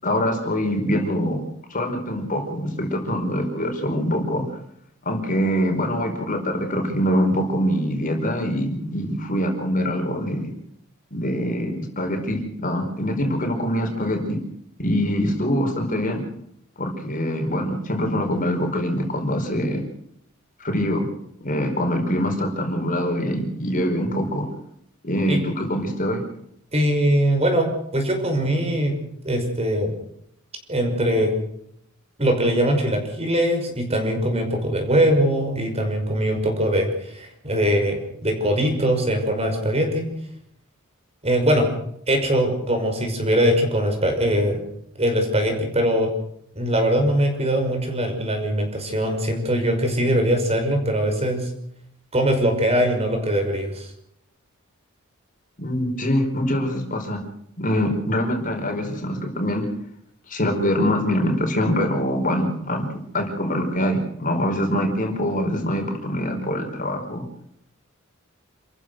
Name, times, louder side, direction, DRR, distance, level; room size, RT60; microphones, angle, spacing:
voice 1, 0.0-1.4 1.7-4.5 5.0-10.5 11.1-14.4 14.8-16.2 16.8-19.8 20.6-21.1 21.4-24.5 25.0-26.2 55.6-57.2 57.6-59.7 60.3-62.9 63.1-67.2, equal, 40° left, 3 dB, 4.8 m, -24 dB
voice 2, 26.7-28.9 29.2-29.9 30.7-31.3 32.2-36.9 37.1-40.1 41.2-41.7 42.1-44.6 45.0-46.1 46.5-51.5 52.1-53.9, equal, 30° right, 4 dB, 5.7 m, -21 dB
28.5 x 15.0 x 6.4 m, 0.71 s
head